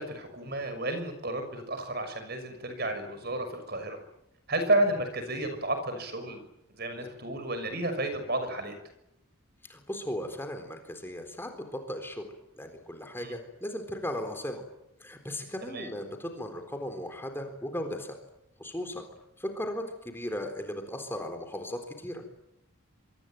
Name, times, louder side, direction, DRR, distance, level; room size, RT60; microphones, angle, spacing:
voice 1, 0.0-4.0 4.5-6.4 6.7-8.7 13.2-13.3 15.7-15.9, right 1 dB, 45° right, 8 dB, 6.3 m, -31 dB
voice 2, 9.6-12.2 12.6-14.6 15.0-18.1 18.6-19.0 19.4-22.2, left 1 dB, 10° left, 5 dB, 3.9 m, -37 dB
26.5 x 24.5 x 9.2 m, 0.82 s
head